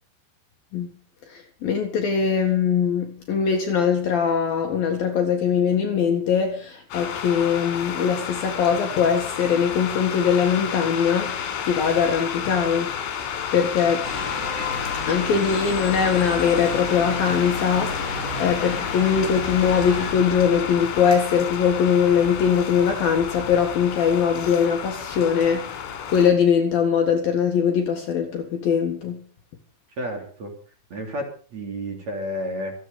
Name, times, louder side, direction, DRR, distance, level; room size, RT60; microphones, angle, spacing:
voice 1, 1.3-11.4 11.7-12.9 13.5-14.1 15.1-18.1 18.4-25.7 26.1-29.2, left 7 dB, 60° left, 3.0 m, -21 dB
sound 1, 6.9-26.3, left 8 dB, 80° left, 5.1 m, -31 dB
sound 2, 14.0-20.1, left 3 dB, 35° left, 4.9 m, -32 dB
voice 2, 30.0-30.6 30.9-32.7, equal, 40° right, 3.9 m, -31 dB
26.5 x 8.9 x 5.3 m
omnidirectional pair, 5.7 m